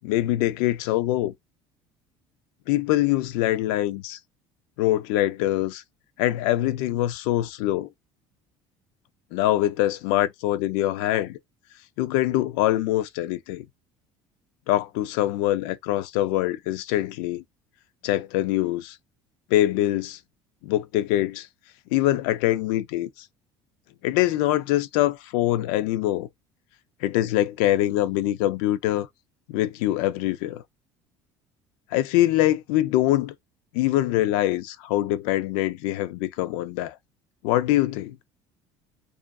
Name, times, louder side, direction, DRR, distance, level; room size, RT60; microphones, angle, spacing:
voice 1, 0.0-1.3 2.7-4.2 4.8-5.8 6.2-7.9 9.3-11.4 12.0-13.6 14.7-17.4 18.0-19.0 19.5-20.2 20.6-21.5 21.9-23.1 24.0-26.3 27.0-29.1 29.5-30.6 31.9-33.3 33.7-37.0 37.4-38.2, left 14 dB, 85° left, 0.4 m, -24 dB
2.5 x 2.4 x 2.3 m
supercardioid pair, 95°, 11 cm